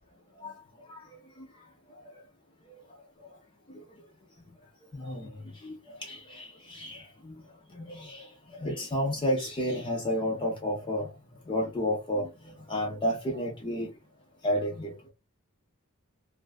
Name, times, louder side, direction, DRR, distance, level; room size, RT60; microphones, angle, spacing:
voice 1, 4.9-5.3 5.6-7.0 7.8-8.2 8.6-11.1 11.5-12.3 12.7-13.9 14.4-14.9, equal, 25° left, 0.5 m, -31 dB
2.5 x 2.3 x 2.2 m
head